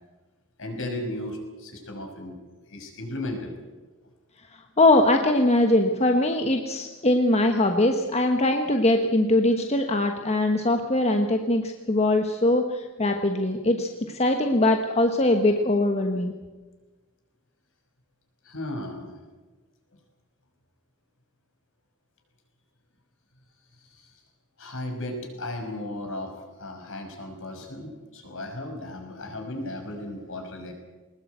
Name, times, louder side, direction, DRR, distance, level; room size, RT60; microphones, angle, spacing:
voice 1, 0.6-2.4 2.7-3.5 18.4-19.2 23.8-24.2 24.6-30.7, left 1 dB, 60° left, 4 dB, 5.8 m, -35 dB
voice 2, 4.8-16.3, left 1 dB, 30° left, 4 dB, 1.3 m, -22 dB
21.0 x 20.5 x 8.1 m, 1.3 s
head